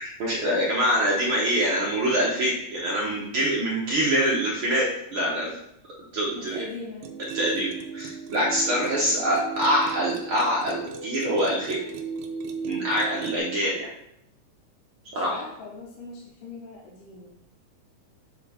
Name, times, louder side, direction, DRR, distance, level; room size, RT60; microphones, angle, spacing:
voice 1, 0.0-5.6 6.1-6.6 7.3-11.8 12.6-13.9 15.1-15.4, equal, 65° right, -4 dB, 1.3 m, -25 dB
voice 2, 6.3-7.1 8.9-9.3 15.1-17.3, left 3 dB, 80° left, -3 dB, 2.7 m, -41 dB
sound 1, 7.0-13.4, right 5 dB, 85° right, 2.3 m, -36 dB
8.8 x 3.8 x 4.3 m, 0.76 s
omnidirectional pair, 3.9 m